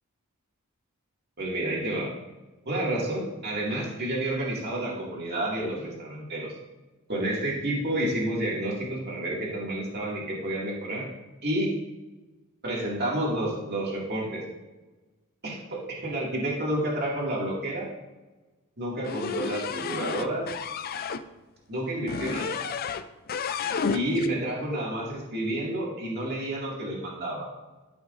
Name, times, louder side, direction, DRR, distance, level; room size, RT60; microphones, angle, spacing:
voice 1, 1.4-2.1 2.7-6.5 7.1-11.1 11.4-11.7 12.6-14.4 15.4-17.9 18.8-20.5 21.7-22.6 23.9-27.5, right 1 dB, 50° right, -4 dB, 2.2 m, -30 dB
sound 1, 19.0-21.2 22.1-23.0 23.3-24.3, left 5 dB, 45° left, 0.4 m, -31 dB
13.5 x 6.1 x 2.6 m, 1.2 s
head